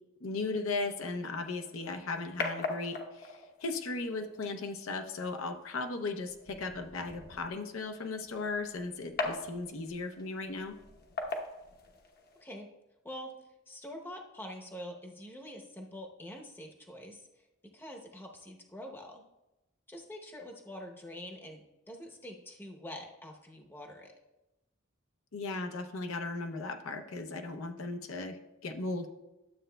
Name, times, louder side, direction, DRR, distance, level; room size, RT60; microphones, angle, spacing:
voice 1, 0.2-10.8 25.3-29.1, left 3 dB, 70° left, 6 dB, 0.7 m, -37 dB
sound 1, 1.4-12.4, left 3 dB, 45° left, 0.9 m, -42 dB
voice 2, 13.7-17.2 17.7-19.2 19.9-24.2, equal, 10° left, 1 dB, 0.8 m, -45 dB
12.0 x 7.5 x 2.2 m, 0.97 s
head